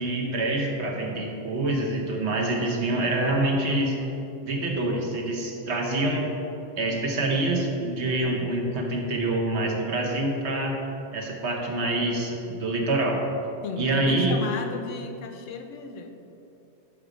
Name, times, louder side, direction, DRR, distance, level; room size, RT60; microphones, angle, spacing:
voice 1, 0.0-4.0 4.4-6.3 6.8-10.8 11.1-13.2 13.8-14.4, right 2 dB, 65° right, 0 dB, 1.1 m, -26 dB
voice 2, 13.6-16.1, left 5 dB, 75° left, 6 dB, 0.9 m, -34 dB
6.0 x 5.2 x 4.9 m, 2.8 s
omnidirectional pair, 1.3 m